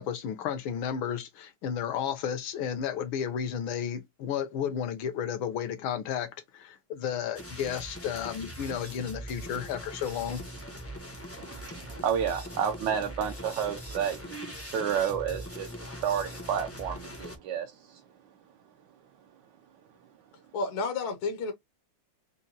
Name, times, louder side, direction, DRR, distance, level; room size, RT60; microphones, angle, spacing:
voice 1, 0.0-6.3 6.5-10.4, left 8 dB, 75° left, 1.7 m, -32 dB
sound 1, 7.3-17.4, equal, 20° left, 0.4 m, -41 dB
voice 2, 11.4-18.0, right 8 dB, 70° right, 1.2 m, -31 dB
voice 3, 20.5-21.5, left 4 dB, 60° left, 1.1 m, -31 dB
5.2 x 2.2 x 2.7 m
omnidirectional pair, 2.3 m